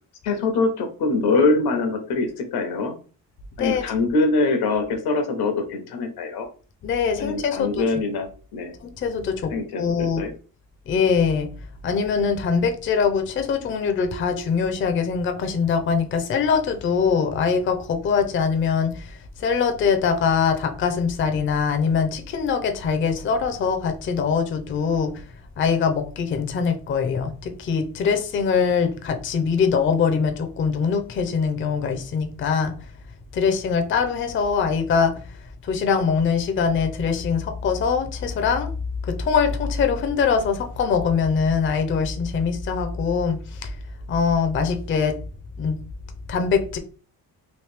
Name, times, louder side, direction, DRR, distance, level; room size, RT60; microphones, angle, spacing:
voice 1, 0.2-2.9 3.6-6.5 7.2-8.7 9.5-10.3, left 3 dB, 90° left, 6 dB, 0.9 m, -23 dB
voice 2, 6.8-7.8 8.8-9.5 9.8-10.2 10.9-11.5 11.8-25.1 25.6-32.7 33.3-35.2 35.6-38.7 39.1-43.8 44.1-45.2 45.6-45.8 46.3-46.8, left 6 dB, 35° left, 6 dB, 0.4 m, -23 dB
3.1 x 2.6 x 3.2 m, 0.38 s
cardioid pair, 170°, 37 cm